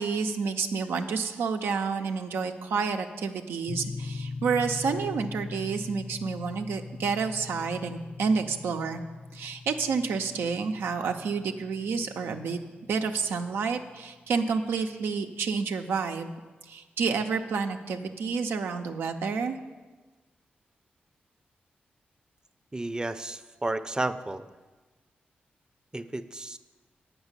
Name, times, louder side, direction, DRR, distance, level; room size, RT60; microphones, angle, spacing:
voice 1, 0.0-9.0 9.3-12.6 12.9-16.3 16.6-19.6, right 5 dB, 90° right, 5 dB, 0.7 m, -29 dB
sound 1, 3.7-13.8, left 3 dB, 65° left, 0.6 m, -41 dB
voice 2, 22.7-24.5 25.9-26.6, right 2 dB, 20° right, 11 dB, 0.6 m, -32 dB
8.9 x 6.1 x 8.2 m, 1.3 s
cardioid pair, 60°, 4 cm